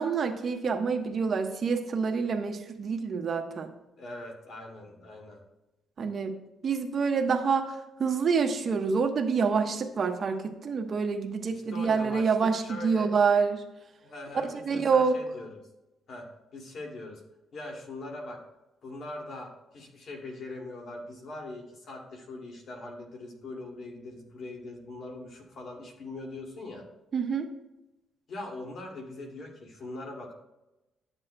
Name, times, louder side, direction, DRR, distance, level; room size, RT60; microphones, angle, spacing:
voice 1, 0.0-3.7 6.0-6.3 6.6-7.7 8.0-13.6 14.7-15.1 27.1-27.5, right 5 dB, 50° right, 5 dB, 1.0 m, -27 dB
voice 2, 4.0-5.4 11.5-13.1 14.0-15.6 16.1-16.3 16.5-17.2 17.5-18.4 18.8-26.9 28.3-30.3, left 2 dB, 60° left, 1 dB, 2.3 m, -41 dB
12.0 x 7.4 x 2.2 m, 0.98 s
cardioid pair, 90°, 0 cm